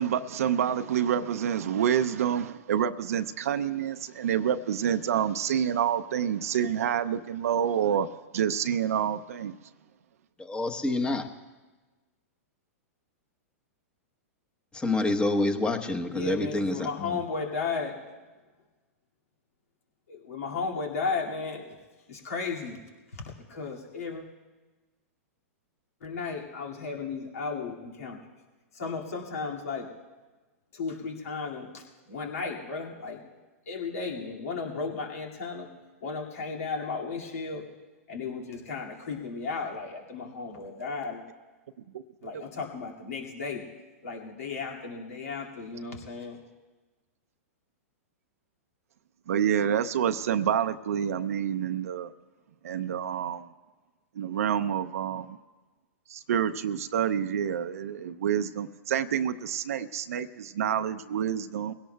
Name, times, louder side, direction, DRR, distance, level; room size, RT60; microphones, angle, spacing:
voice 1, 0.0-9.6 41.9-42.0 42.3-42.4 49.3-52.1 52.6-53.4 54.2-55.4 56.1-61.7, right 9 dB, 75° right, 9 dB, 0.5 m, -28 dB
voice 2, 10.4-11.2 14.7-17.2, left 2 dB, 10° left, 7 dB, 1.0 m, -27 dB
voice 3, 16.1-18.0 20.1-21.8 22.1-22.8 23.1-24.2 26.0-28.2 28.7-29.9 30.7-33.2 33.7-35.7 36.0-37.6 38.1-41.2 42.2-43.7 44.0-46.4, left 4 dB, 75° left, -1 dB, 2.2 m, -34 dB
23.0 x 17.0 x 2.3 m, 1.3 s
hypercardioid pair, 120°, 8 cm